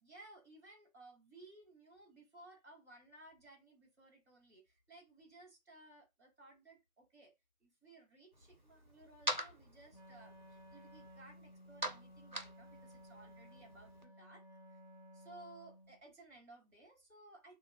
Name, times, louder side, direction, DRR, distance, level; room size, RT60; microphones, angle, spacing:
voice 1, 0.0-7.3 7.6-14.4 14.7-14.8 15.1-17.6, right 2 dB, 10° right, 0.9 m, -59 dB
sound 1, 8.3-14.0, right 1 dB, 35° right, 0.5 m, -45 dB
Wind instrument woodwind instrument, 9.9-16.0, equal, 30° left, 0.7 m, -58 dB
3.2 x 2.0 x 3.5 m
figure-of-eight pair, 170°, 42 cm